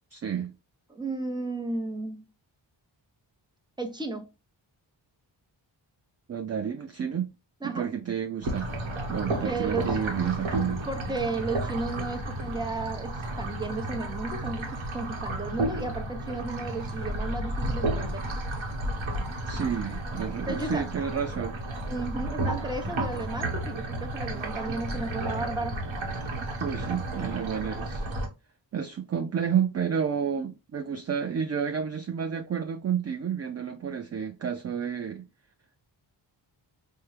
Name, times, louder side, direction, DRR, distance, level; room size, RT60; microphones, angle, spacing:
voice 1, 0.1-0.5 6.3-7.3 7.6-8.7 9.1-10.8 19.5-21.6 26.6-28.0 28.7-35.2, right 7 dB, 35° right, 0.4 m, -30 dB
voice 2, 0.9-2.2 3.8-4.3 7.6-7.9 9.3-10.0 10.9-18.3 20.5-20.9 21.9-25.8, right 2 dB, 10° right, 0.8 m, -34 dB
sound 1, 8.4-28.3, right 1 dB, 90° right, 1.1 m, -32 dB
4.5 x 2.2 x 3.2 m
wide cardioid pair, 80°, 47 cm